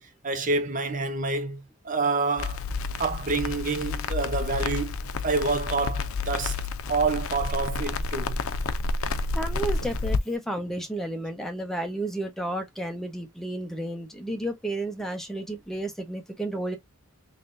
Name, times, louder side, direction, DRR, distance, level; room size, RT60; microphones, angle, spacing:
voice 1, 0.0-2.6 3.0-6.6 6.9-8.4, right 3 dB, 35° right, 0.9 m, -28 dB
Crackle, 2.4-10.2, left 3 dB, 75° left, 0.6 m, -30 dB
voice 2, 9.0-16.8, right 1 dB, ahead, 0.9 m, -32 dB
3.8 x 3.3 x 2.6 m
head